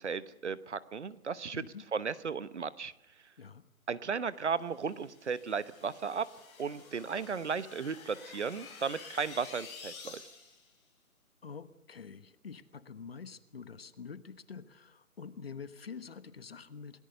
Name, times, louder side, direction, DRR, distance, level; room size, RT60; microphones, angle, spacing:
voice 1, 0.0-1.6 1.9-2.9 3.9-6.3 6.6-10.2, right 5 dB, 50° right, 16 dB, 1.1 m, -35 dB
voice 2, 1.5-1.8 3.4-3.6 11.4-17.0, left 6 dB, 40° left, 14 dB, 1.3 m, -46 dB
sound 1, 4.7-10.7, left 5 dB, 20° left, 5.0 m, -50 dB
27.5 x 18.5 x 6.8 m, 0.79 s
hypercardioid pair, 170°, 44 cm